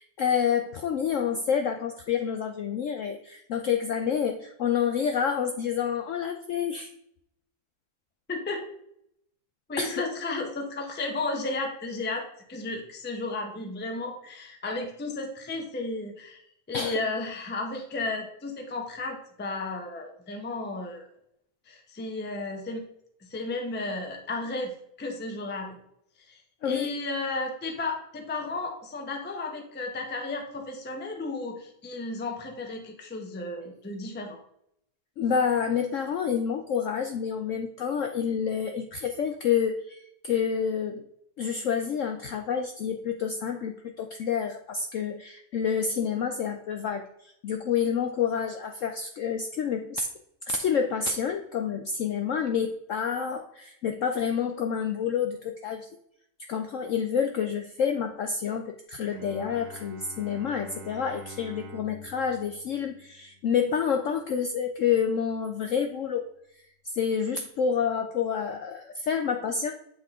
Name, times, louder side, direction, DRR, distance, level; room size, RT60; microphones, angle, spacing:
voice 1, 0.0-6.9 9.8-10.0 16.7-17.0 26.6-26.9 35.2-41.1 41.4-50.1 50.5-55.9 56.5-66.3 66.8-69.7, left 7 dB, 75° left, 5 dB, 0.7 m, -28 dB
voice 2, 8.3-8.6 9.7-12.2 12.5-16.4 16.7-21.1 21.7-22.9 23.2-25.8 26.3-26.4 26.6-34.4, left 3 dB, 15° left, 3 dB, 0.4 m, -33 dB
Bowed string instrument, 59.0-64.7, right 1 dB, 65° right, 1.3 m, -47 dB
7.9 x 3.8 x 3.6 m, 0.73 s
omnidirectional pair, 1.8 m